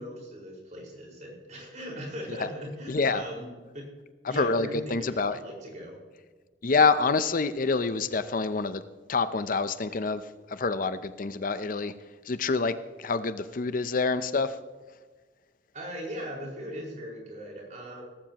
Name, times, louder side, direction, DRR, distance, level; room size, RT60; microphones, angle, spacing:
voice 1, 0.0-3.5 3.7-3.9 4.3-6.0 15.7-18.0, equal, 45° right, -2 dB, 5.0 m, -39 dB
voice 2, 2.9-3.2 4.2-5.4 6.6-8.8 9.1-10.2 10.5-11.9 12.2-14.6, left 4 dB, 50° left, 12 dB, 0.6 m, -27 dB
18.0 x 14.5 x 3.0 m, 1.4 s
head